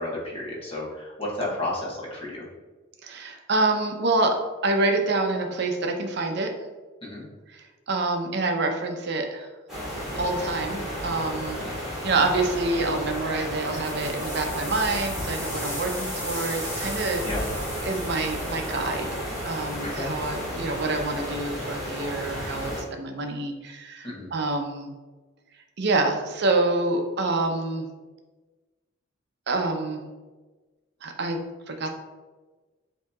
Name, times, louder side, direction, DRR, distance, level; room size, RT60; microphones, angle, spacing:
voice 1, 0.0-2.4 7.0-7.2 11.5-11.7 17.2-17.4 19.8-20.1 24.0-24.3, left 1 dB, 30° left, -4 dB, 1.1 m, -32 dB
voice 2, 3.0-6.5 7.5-9.5 10.2-17.2 17.8-24.9 25.8-27.9 29.5-30.0 31.0-31.9, right 2 dB, 55° right, 4 dB, 0.6 m, -27 dB
sound 1, 9.7-22.8, equal, 5° right, 1.5 m, -33 dB
sound 2, 13.4-20.5, left 1 dB, 10° left, 1.5 m, -39 dB
7.2 x 2.8 x 2.3 m, 1.3 s
head